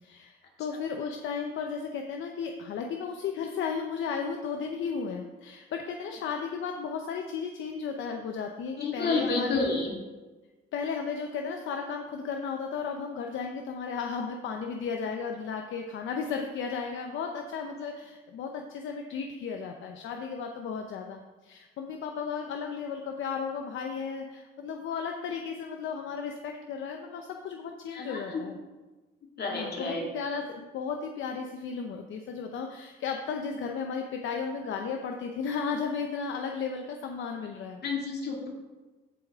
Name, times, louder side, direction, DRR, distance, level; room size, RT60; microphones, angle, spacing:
voice 1, 0.0-9.7 10.7-28.6 29.5-37.8, left 6 dB, 75° left, 3 dB, 0.8 m, -34 dB
voice 2, 8.8-9.9 27.9-28.4 29.4-30.0 37.8-38.5, left 3 dB, 55° left, -1 dB, 2.3 m, -30 dB
15.0 x 4.9 x 3.6 m, 1.2 s
cardioid pair, 90°, 20 cm